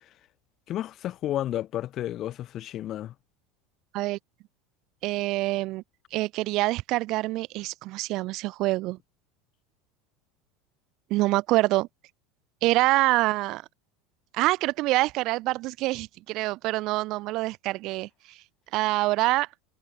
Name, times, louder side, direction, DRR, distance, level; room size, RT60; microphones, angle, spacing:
voice 1, 0.7-3.1, left 12 dB, 45° left, 1.0 m, -31 dB
voice 2, 5.0-5.8 6.1-9.0 11.1-11.9 12.6-13.6 14.3-18.1 18.7-19.5, right 19 dB, 55° right, 0.3 m, -25 dB
hypercardioid pair, 80°, 0 cm